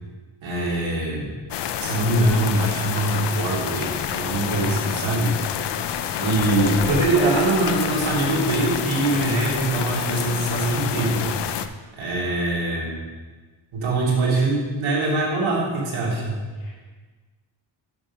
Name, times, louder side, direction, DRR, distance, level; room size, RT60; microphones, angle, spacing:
voice 1, 0.4-1.3 1.8-5.4 6.2-11.3 11.9-13.0 13.7-16.4, right 2 dB, 90° right, -4 dB, 2.8 m, -23 dB
sound 1, 1.5-11.7, left 10 dB, 60° left, 0.5 m, -28 dB
voice 2, 6.5-7.5 16.6-16.8, left 2 dB, 85° left, -3 dB, 2.5 m, -31 dB
7.2 x 6.4 x 5.5 m, 1.4 s
wide cardioid pair, 165°, 46 cm